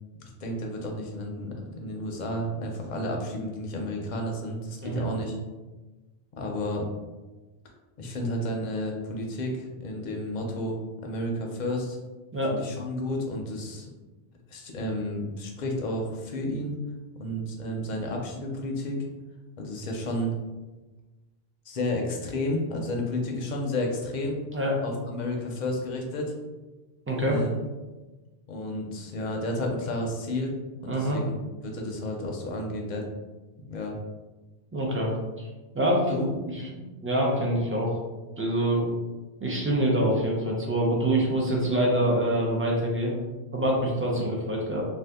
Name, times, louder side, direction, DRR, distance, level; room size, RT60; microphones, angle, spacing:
voice 1, 0.2-5.4 6.4-6.9 8.0-10.7 11.0-12.0 12.5-13.9 14.5-16.7 17.2-19.0 19.6-20.3 21.7-24.4 24.8-26.3 27.2-27.6 28.5-30.5 30.8-31.4 31.6-33.1 33.7-33.9 36.1-36.3 44.1-44.2, left 1 dB, 50° left, 1 dB, 0.6 m, -31 dB
voice 2, 27.1-27.4 30.9-31.2 34.7-35.5 35.7-36.2 36.5-36.6 37.0-38.0 38.4-38.9 39.4-43.2 43.5-44.9, right 1 dB, 20° right, -2 dB, 0.4 m, -25 dB
2.7 x 2.3 x 3.4 m, 1.2 s
omnidirectional pair, 1.1 m